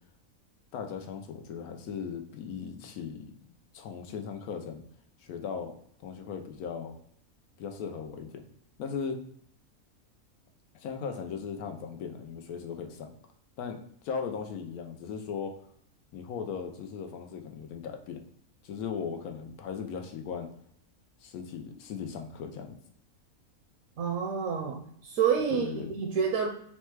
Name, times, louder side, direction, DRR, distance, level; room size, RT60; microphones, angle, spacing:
voice 1, 0.7-4.8 5.2-5.7 6.0-6.9 7.6-8.5 8.8-9.2 10.7-13.1 13.6-13.8 14.0-15.6 16.1-18.2 18.6-20.5 21.2-22.8 25.5-25.9, left 6 dB, 85° left, 5 dB, 1.1 m, -38 dB
voice 2, 24.0-26.5, right 6 dB, 70° right, 1 dB, 0.9 m, -28 dB
4.0 x 2.2 x 4.5 m, 0.67 s
omnidirectional pair, 1.5 m